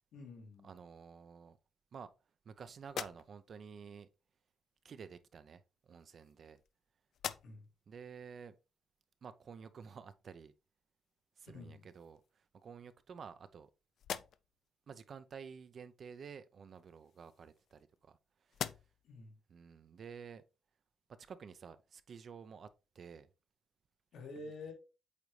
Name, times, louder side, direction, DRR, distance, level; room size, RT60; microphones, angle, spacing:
voice 1, 0.1-0.7 7.4-7.7 11.5-11.8 19.0-19.4 24.1-24.7, left 3 dB, 90° left, 2.4 m, -48 dB
voice 2, 0.6-1.6 1.9-2.1 2.4-4.1 4.8-6.6 7.9-8.5 9.2-10.5 11.4-13.7 14.9-18.8 19.5-20.4 21.2-22.7 22.9-23.3, right 6 dB, 50° right, 0.6 m, -51 dB
sound 1, 2.8-3.7 4.8-5.0 5.9-6.8 7.1-7.8 8.3-8.4 11.1-11.2 11.6-12.3 12.9-13.6 13.9-14.7 16.7-18.1 18.5-19.2, left 9 dB, 70° left, 0.4 m, -46 dB
8.3 x 4.0 x 3.2 m
cardioid pair, 125°, 0 cm